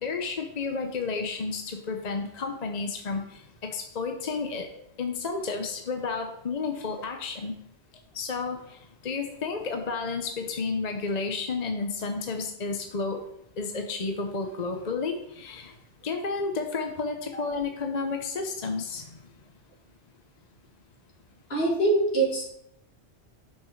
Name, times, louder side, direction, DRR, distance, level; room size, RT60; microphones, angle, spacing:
voice 1, 0.0-4.7 5.0-7.6 8.1-13.2 13.6-15.7 16.0-19.2, left 4 dB, 40° left, 4 dB, 0.8 m, -31 dB
voice 2, 21.5-22.5, right 2 dB, 65° left, -2 dB, 2.5 m, -24 dB
6.0 x 5.6 x 6.3 m, 0.75 s
omnidirectional pair, 1.1 m